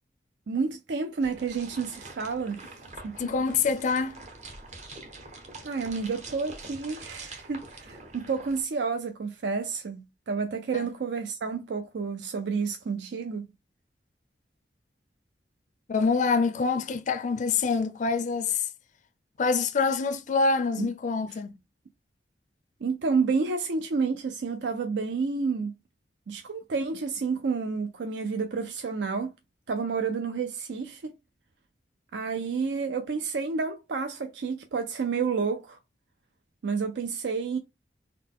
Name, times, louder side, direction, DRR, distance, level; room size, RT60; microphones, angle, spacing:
voice 1, 0.5-3.2 5.6-13.5 20.8-20.9 22.8-25.7 26.3-29.3 29.7-31.1 32.1-35.8 36.6-37.6, right 5 dB, 75° right, 0.4 m, -30 dB
sound 1, 1.2-8.6, right 3 dB, 40° right, 0.8 m, -45 dB
voice 2, 3.2-4.2 10.7-10.8 15.9-18.7 19.4-21.5, left 4 dB, 45° left, 0.4 m, -26 dB
3.8 x 2.2 x 3.6 m
head